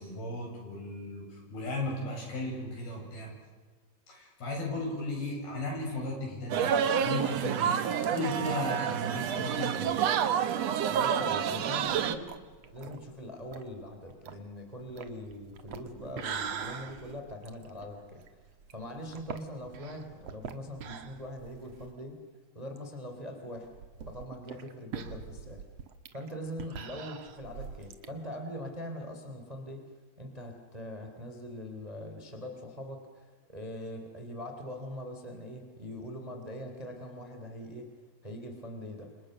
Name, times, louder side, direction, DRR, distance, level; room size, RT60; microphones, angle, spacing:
voice 1, 0.0-3.3 4.1-6.7 7.0-9.9, left 2 dB, 65° left, 0 dB, 9.7 m, -35 dB
sound 1, 6.5-12.1, right 8 dB, 70° right, 1.5 m, -28 dB
voice 2, 10.9-12.3 12.6-18.2 18.7-22.2 22.5-23.7 24.1-25.6 26.1-29.8 30.2-37.9 38.2-39.1, equal, 10° right, 4 dB, 3.0 m, -42 dB
sound 2, 11.8-22.0 22.3-22.4 22.8-22.9 23.6-28.1, right 7 dB, 55° right, 1.9 m, -43 dB
29.5 x 26.5 x 6.7 m, 1.5 s
omnidirectional pair, 4.8 m